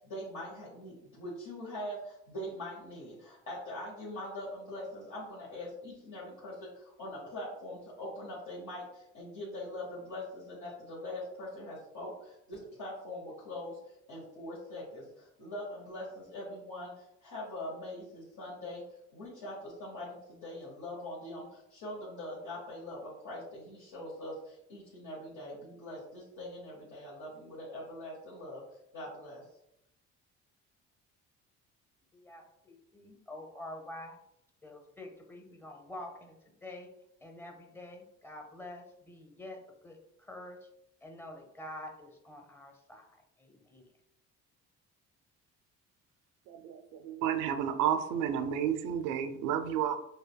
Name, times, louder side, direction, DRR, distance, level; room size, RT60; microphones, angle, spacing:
voice 1, 0.0-28.6 28.9-29.4, left 1 dB, 70° left, -8 dB, 1.4 m, -43 dB
voice 2, 32.1-34.2 34.6-36.4 36.6-36.9 37.2-40.0 40.3-40.6 41.0-43.0 43.4-43.9, left 1 dB, 5° left, 2 dB, 0.7 m, -47 dB
voice 3, 46.5-50.0, right 9 dB, 80° right, 7 dB, 0.5 m, -31 dB
5.0 x 2.3 x 2.2 m, 0.81 s
cardioid pair, 95°, 31 cm